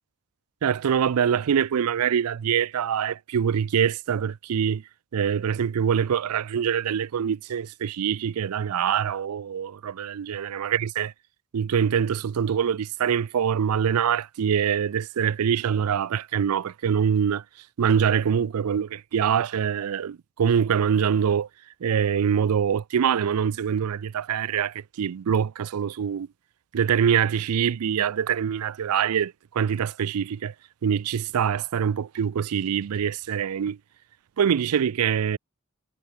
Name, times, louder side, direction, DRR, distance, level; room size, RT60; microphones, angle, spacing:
voice 1, 0.6-4.8 5.1-11.1 11.5-17.4 17.8-21.5 21.8-26.3 26.7-30.5 30.8-33.8 34.4-35.4, right 8 dB, 80° right, 0.4 m, -24 dB
head